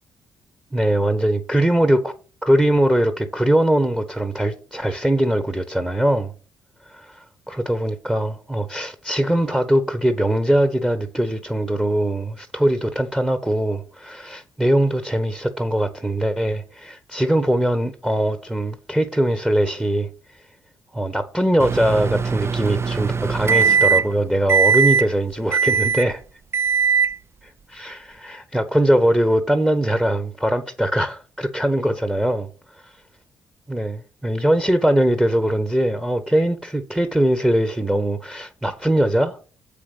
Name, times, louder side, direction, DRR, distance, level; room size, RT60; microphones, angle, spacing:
voice 1, 0.7-2.1 2.4-6.3 6.9-20.4 20.9-26.2 27.4-32.5 32.8-33.0 33.7-39.4, right 1 dB, 5° right, 1.2 m, -21 dB
Microwave oven, 21.6-24.2 24.5-25.1 25.5-26.1 26.5-27.1, right 6 dB, 30° right, 0.4 m, -19 dB
7.7 x 5.1 x 6.6 m
hypercardioid pair, 45°, 9 cm